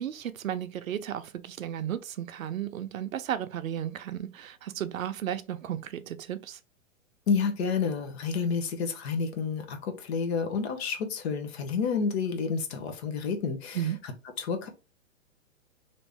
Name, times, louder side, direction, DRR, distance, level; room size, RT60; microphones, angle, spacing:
voice 1, 0.0-6.6 13.7-14.0, right 10 dB, 90° right, 0.6 m, -34 dB
voice 2, 7.3-13.8 14.4-14.7, left 5 dB, 50° left, 0.9 m, -29 dB
3.1 x 2.7 x 3.4 m
hypercardioid pair, 135°, 40 cm